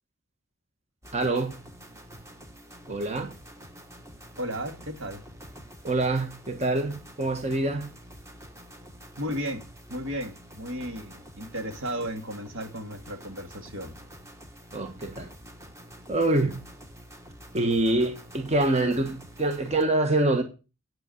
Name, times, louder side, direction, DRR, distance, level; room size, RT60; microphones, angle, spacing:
sound 1, 1.0-19.8, equal, 15° right, 1.3 m, -47 dB
voice 1, 1.1-1.6 2.9-3.3 5.8-7.9 14.7-15.3 16.1-16.6 17.5-20.4, right 2 dB, 30° right, 1.3 m, -25 dB
voice 2, 4.4-5.2 9.2-14.0, equal, 70° right, 2.2 m, -34 dB
9.2 x 8.2 x 7.8 m
head